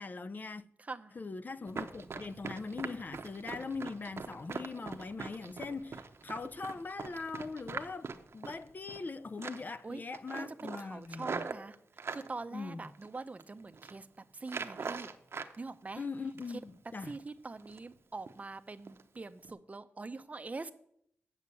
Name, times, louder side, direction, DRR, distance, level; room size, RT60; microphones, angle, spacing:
voice 1, 0.0-0.6 1.1-8.1 8.3-11.4 12.5-12.8 16.0-17.1, left 4 dB, 40° left, 0.5 m, -41 dB
voice 2, 0.8-1.1 9.8-10.0 10.3-11.8 12.1-14.1 14.3-15.1 15.6-16.1 17.0-20.7, right 3 dB, 30° right, 0.6 m, -44 dB
Run, 1.7-9.1 9.4-9.8 10.1-12.3 12.8-13.4 13.7-14.0 14.4-15.5 15.9-16.7 17.0-17.2 17.6-17.9 18.3-18.4 18.9-19.0 19.4-19.5, right 5 dB, 60° right, 0.8 m, -42 dB
8.5 x 6.5 x 8.2 m
wide cardioid pair, 100°, 5 cm